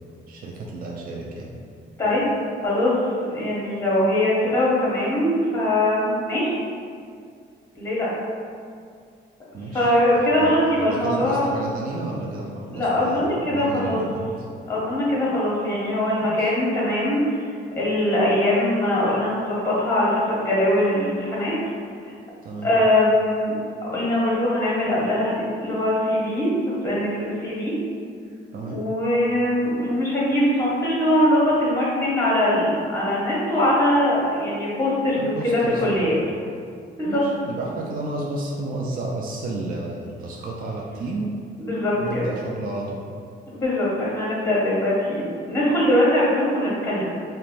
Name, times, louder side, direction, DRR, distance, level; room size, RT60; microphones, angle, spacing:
voice 1, 0.3-1.5 9.5-14.3 16.2-16.5 22.4-22.7 28.5-28.8 35.1-36.2 37.1-41.3 42.0-43.0, right 2 dB, 45° right, -2 dB, 0.4 m, -32 dB
voice 2, 3.3-6.6 7.7-8.1 9.7-11.5 12.7-14.0 14.7-17.4 17.8-21.5 22.6-23.5 23.8-27.7 28.7-36.1 37.0-37.2 41.6-42.3 43.5-47.0, left 1 dB, 15° left, -7 dB, 0.8 m, -22 dB
2.9 x 2.1 x 2.5 m, 2.2 s
cardioid pair, 90°, 20 cm